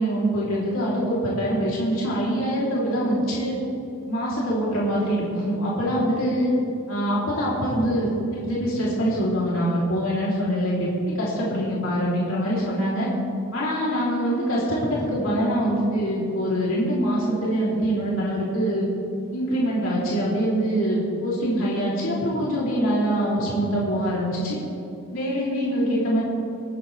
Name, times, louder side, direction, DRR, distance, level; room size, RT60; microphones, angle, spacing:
voice 1, 0.0-3.5 4.1-6.5 6.9-13.1 13.5-18.9 19.3-24.6 25.1-26.2, equal, 85° left, -6 dB, 3.5 m, -24 dB
27.0 x 9.7 x 3.4 m, 2.7 s
head